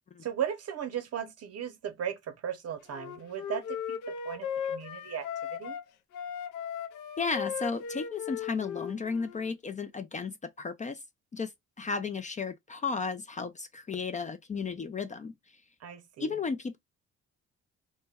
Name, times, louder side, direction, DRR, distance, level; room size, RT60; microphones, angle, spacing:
voice 1, 0.2-4.0 4.2-5.3 5.5-5.8 15.8-16.3, right 9 dB, 55° right, 0.7 m, -36 dB
Wind instrument woodwind instrument, 2.9-5.8 6.1-9.5, left 8 dB, 85° left, 0.5 m, -37 dB
voice 2, 7.2-11.0 11.3-11.5 11.8-15.3 16.2-16.8, left 4 dB, 25° left, 0.3 m, -34 dB
2.2 x 2.1 x 3.3 m
cardioid pair, 90°, 30 cm